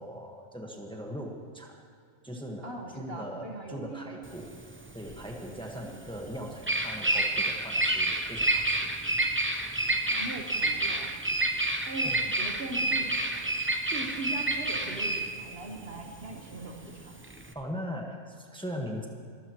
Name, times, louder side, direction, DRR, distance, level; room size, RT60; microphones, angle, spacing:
voice 1, 0.0-1.8 2.2-4.5 4.9-8.9 12.0-12.3 17.5-19.1, equal, 5° left, 0 dB, 1.4 m, -40 dB
voice 2, 2.6-4.1 5.7-5.9 10.1-11.1 11.9-13.1 13.8-17.1, right 2 dB, 50° right, 2 dB, 1.6 m, -40 dB
Bird vocalization bird call bird song, 4.3-17.5, right 1 dB, 10° right, 0.6 m, -29 dB
24.5 x 15.0 x 3.1 m, 2.2 s
omnidirectional pair, 1.4 m